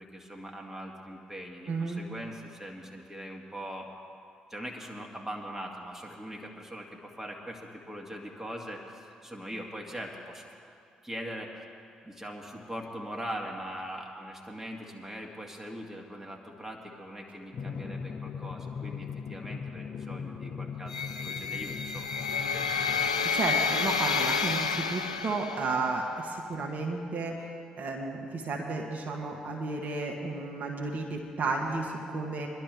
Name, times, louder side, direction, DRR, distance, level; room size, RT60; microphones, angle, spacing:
voice 1, 0.0-3.9 4.5-10.5 11.0-11.5 12.0-20.9 21.2-23.2, equal, 10° right, -1 dB, 2.2 m, -41 dB
voice 2, 1.7-2.0 23.3-32.5, right 3 dB, 50° right, 0 dB, 1.5 m, -33 dB
Drum, 17.5-23.1, left 6 dB, 50° left, 0.8 m, -39 dB
sound 1, 20.9-25.9, left 5 dB, 90° left, 0.4 m, -30 dB
22.0 x 11.5 x 3.6 m, 2.4 s
figure-of-eight pair, 45°, 3 cm